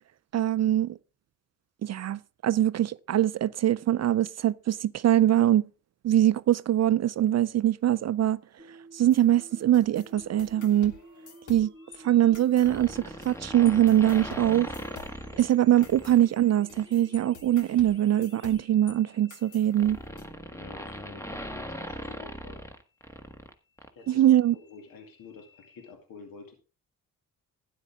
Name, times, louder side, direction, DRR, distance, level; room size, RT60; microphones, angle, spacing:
voice 1, 0.3-1.0 1.8-5.7 6.0-8.4 8.9-10.9 11.5-11.7 12.0-14.7 15.4-20.0 24.1-24.6, right 12 dB, 50° right, 0.5 m, -23 dB
sound 1, 8.6-18.6, right 1 dB, 15° right, 3.1 m, -52 dB
sound 2, 9.1-12.0 12.3-13.4 13.7-19.0 19.3-20.3, left 6 dB, 60° left, 1.7 m, -50 dB
sound 3, 12.5-16.2 16.7-17.0 18.2-23.5 23.8-23.9, equal, 10° left, 1.5 m, -40 dB
voice 2, 20.5-22.6 23.9-26.5, left 4 dB, 85° left, 2.4 m, -49 dB
12.0 x 10.0 x 3.6 m
cardioid pair, 70°, 34 cm